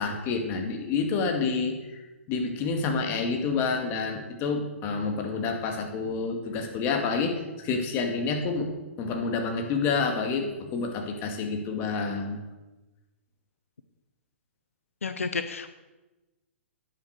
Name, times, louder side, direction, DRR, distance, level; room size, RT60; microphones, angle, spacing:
voice 1, 0.0-1.7 2.3-8.7 9.0-12.4, left 4 dB, 30° left, 4 dB, 2.1 m, -28 dB
voice 2, 15.0-15.7, left 4 dB, 85° left, 10 dB, 0.7 m, -31 dB
10.5 x 7.8 x 6.6 m, 1.1 s
hypercardioid pair, 130°, 7 cm